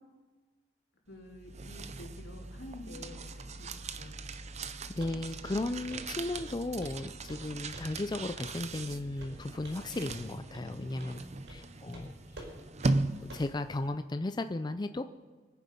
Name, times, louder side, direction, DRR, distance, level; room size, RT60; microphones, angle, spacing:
voice 1, 1.1-3.3 3.5-4.2 10.8-11.6, left 1 dB, 85° left, 0 dB, 3.2 m, -49 dB
sound 1, 1.2-13.8, right 2 dB, 40° right, 0.7 m, -38 dB
voice 2, 4.6-11.2 11.5-12.1 13.2-15.0, left 2 dB, 25° left, 9 dB, 0.5 m, -35 dB
Walk footsteps, 5.0-5.2 5.4-5.6 5.9-6.1 6.4-7.0 7.3-7.5 7.7-8.0 8.8-8.9 9.2-9.8 10.1-10.3 10.5-10.7 11.0-11.2 11.5-11.6 11.9-12.1 12.4-12.5 12.8-12.9 13.3-13.5, right 1 dB, 75° right, 4.9 m, -47 dB
24.5 x 9.3 x 5.4 m, 1.4 s
head